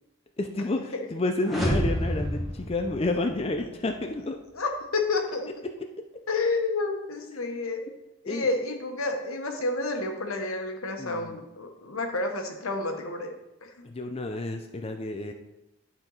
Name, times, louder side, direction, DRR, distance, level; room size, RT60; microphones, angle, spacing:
voice 1, 0.4-4.4 8.3-8.5 11.0-11.4 13.8-15.3, left 2 dB, 30° left, 5 dB, 0.4 m, -30 dB
sound 1, 1.4-3.6, equal, ahead, 1.4 m, -29 dB
voice 2, 4.5-5.7 6.3-7.9 8.2-13.3 13.6-13.8, left 3 dB, 85° left, 4 dB, 1.1 m, -30 dB
11.0 x 4.4 x 4.0 m, 0.94 s
head